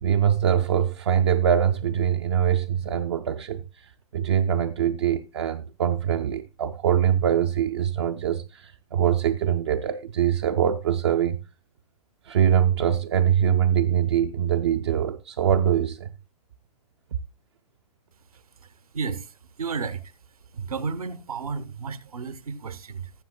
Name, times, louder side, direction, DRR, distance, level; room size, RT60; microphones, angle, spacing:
voice 1, 0.0-11.4 12.2-16.1, right 9 dB, 45° right, 0.5 m, -23 dB
voice 2, 18.3-20.1 20.5-23.1, right 5 dB, 65° right, 1.1 m, -33 dB
19.0 x 7.7 x 2.2 m
figure-of-eight pair, 120°, 20 cm